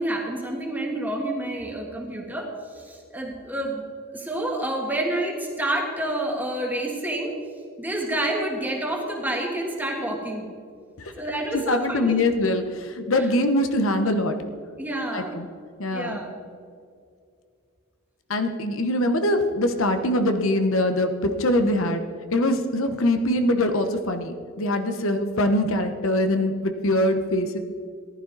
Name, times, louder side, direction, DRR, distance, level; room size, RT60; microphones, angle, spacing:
voice 1, 0.0-3.8 4.1-7.3 7.8-10.5 11.2-12.2 13.2-13.3 14.8-15.4 15.9-16.4, right 1 dB, 10° right, 0 dB, 1.7 m, -28 dB
voice 2, 11.7-14.3 15.1-15.5 15.8-16.2 18.3-22.0 22.3-27.6, left 1 dB, 70° left, 7 dB, 1.0 m, -23 dB
14.5 x 11.5 x 4.0 m, 2.3 s
head